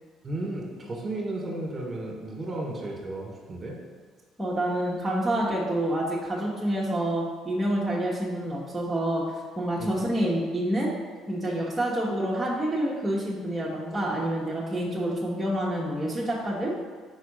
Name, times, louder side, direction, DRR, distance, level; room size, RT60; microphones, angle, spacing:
voice 1, 0.2-3.8 9.8-10.1, right 2 dB, 35° right, -1 dB, 1.7 m, -34 dB
voice 2, 4.4-10.9 11.3-16.7, right 1 dB, 10° right, -7 dB, 1.3 m, -28 dB
4.7 x 4.1 x 5.4 m, 1.5 s
hypercardioid pair, 65°, 0 cm